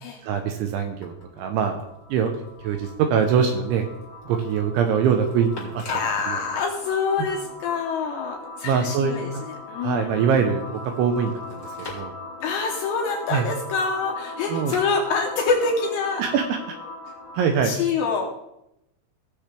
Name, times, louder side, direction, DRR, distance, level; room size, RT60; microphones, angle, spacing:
voice 1, 0.2-1.8 2.1-2.3 2.6-3.9 4.3-5.8 6.3-6.4 8.6-9.2 9.8-12.1 13.3-13.5 14.5-14.7 16.2-16.8 17.3-17.7, right 7 dB, 85° right, 6 dB, 2.8 m, -23 dB
sound 1, 1.0-17.7, left 2 dB, 55° left, 2.7 m, -40 dB
sound 2, 1.0-7.7 8.1-16.2 17.1-17.8, left 2 dB, 5° left, 2.2 m, -48 dB
voice 2, 5.9-10.3 12.4-16.2 17.1-17.2 17.6-18.5, left 4 dB, 80° left, 0 dB, 2.6 m, -26 dB
18.0 x 6.8 x 3.3 m, 0.85 s
omnidirectional pair, 6.0 m